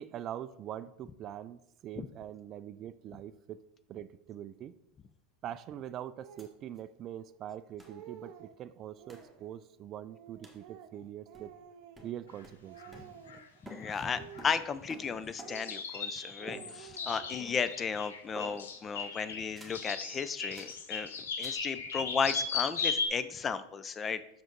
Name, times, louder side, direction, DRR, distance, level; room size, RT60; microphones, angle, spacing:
voice 1, 0.0-3.6 3.9-4.8 5.4-11.5 12.0-12.9 13.9-14.1, right 11 dB, 40° right, 15 dB, 0.3 m, -43 dB
Speech, 6.2-6.6 7.3-7.4 7.7-8.6 9.0-9.6 10.1-12.4 12.6-13.6 14.1-15.0 15.4-16.1 16.4-17.6, right 9 dB, 55° right, 0.8 m, -52 dB
sound 1, 6.4-6.5 6.8-6.9 7.8-8.0 9.1-9.3 10.4-10.7 11.3-11.7 11.9-13.4 13.6-15.8 16.5-17.1 17.4-17.9 18.4-18.9 19.5-19.9 20.5-20.8 21.4-21.7, equal, 10° right, 1.3 m, -51 dB
sound 2, 12.4-12.5 12.8-12.9 13.3-13.4 13.8-14.0 14.3-14.5 15.5-23.1, left 5 dB, 80° left, 0.8 m, -37 dB
voice 2, 13.7-21.1 21.4-24.2, left 6 dB, 25° left, 13 dB, 0.4 m, -34 dB
6.1 x 5.0 x 3.9 m, 0.81 s
hypercardioid pair, 95°, 0 cm